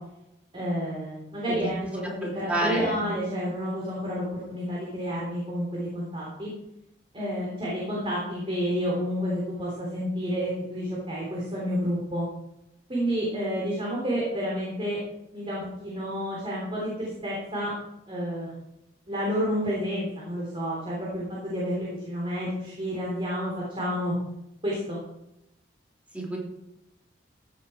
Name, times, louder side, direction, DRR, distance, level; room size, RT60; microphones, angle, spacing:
voice 1, 0.5-6.5 7.1-12.3 12.9-15.0 15.3-17.7 18.1-18.5 19.1-24.1 24.6-25.0, equal, 30° right, -5 dB, 3.5 m, -30 dB
voice 2, 2.2-3.1 26.1-26.4, right 1 dB, 10° right, -3 dB, 3.1 m, -29 dB
15.5 x 7.6 x 4.9 m, 0.86 s
head